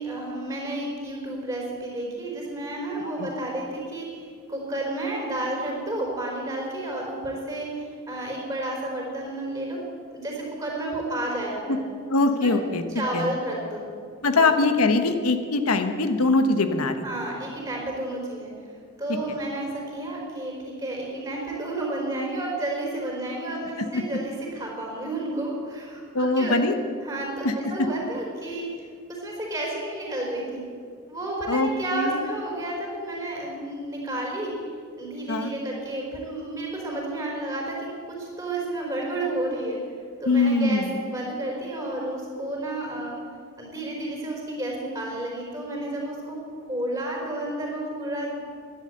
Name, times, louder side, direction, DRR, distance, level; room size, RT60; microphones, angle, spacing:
voice 1, 0.0-4.2 4.5-9.8 10.1-11.8 12.4-12.5 12.9-13.8 14.3-14.6 17.0-18.5 19.0-26.6 27.0-28.8 29.2-30.6 31.1-34.5 35.0-39.8 40.2-43.2 43.6-46.4 46.7-48.3, right 1 dB, 15° right, -2 dB, 4.3 m, -31 dB
voice 2, 12.1-13.3 14.2-17.0 19.1-19.2 23.8-24.0 26.1-26.7 27.4-27.9 31.5-32.3 35.3-35.5 40.2-40.9, left 3 dB, 90° left, 7 dB, 1.0 m, -23 dB
11.5 x 11.5 x 7.8 m, 2.2 s
head